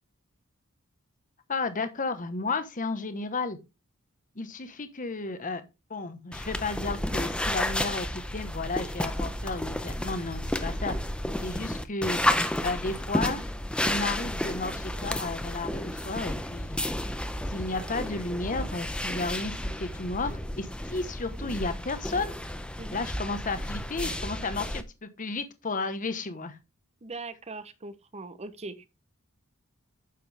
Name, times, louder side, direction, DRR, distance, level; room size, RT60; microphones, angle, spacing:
voice 1, 1.5-3.6 4.3-5.6 5.9-11.0 11.4-12.2 12.6-13.4 13.8-16.8 17.5-19.5 19.8-22.3 22.9-26.6, left 3 dB, 40° left, 1.1 m, -33 dB
sound 1, 6.3-24.8, left 1 dB, 5° left, 0.7 m, -32 dB
voice 2, 27.0-28.9, right 3 dB, 30° right, 0.8 m, -40 dB
9.4 x 6.8 x 3.4 m
head